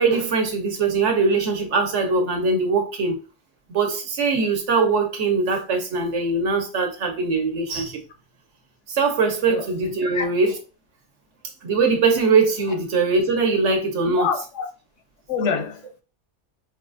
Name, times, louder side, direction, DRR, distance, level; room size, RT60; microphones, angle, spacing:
voice 1, 0.0-3.2 3.7-8.0 8.9-10.6 11.6-14.3, right 4 dB, 65° right, 1.1 m, -21 dB
voice 2, 14.1-14.7 15.3-16.0, left 5 dB, 75° left, 0.9 m, -26 dB
4.5 x 2.3 x 2.5 m
omnidirectional pair, 1.3 m